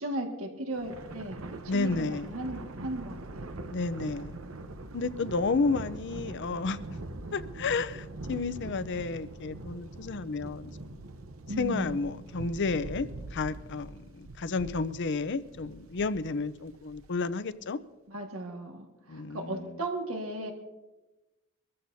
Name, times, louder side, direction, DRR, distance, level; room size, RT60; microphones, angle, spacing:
voice 1, 0.0-3.6 11.5-12.0 18.1-20.5, right 1 dB, 90° right, 3 dB, 1.8 m, -36 dB
Thunder, 0.7-17.3, right 2 dB, 70° right, 0.8 m, -43 dB
voice 2, 1.7-2.3 3.7-4.4 4.9-6.8 7.3-11.0 11.6-17.8 19.1-19.7, left 4 dB, 60° left, 14 dB, 0.6 m, -31 dB
24.0 x 14.5 x 2.7 m, 1.1 s
head